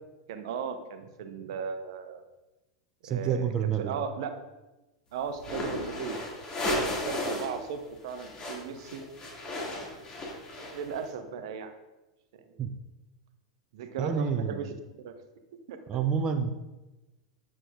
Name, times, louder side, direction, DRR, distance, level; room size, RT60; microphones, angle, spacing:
voice 1, 0.3-2.2 3.0-4.3 5.1-6.2 6.8-9.0 9.7-10.0 10.6-11.7 13.7-14.7 15.0-15.1 15.7-15.8, right 6 dB, 55° right, 8 dB, 0.8 m, -37 dB
voice 2, 3.0-4.0 12.6-12.7 14.0-14.7 15.9-16.5, right 7 dB, 25° right, 7 dB, 0.5 m, -28 dB
sound 1, 5.4-7.6 7.8-11.0, left 1 dB, 25° left, 2.3 m, -34 dB
9.9 x 7.4 x 2.5 m, 1.1 s
figure-of-eight pair, 90°, 3 cm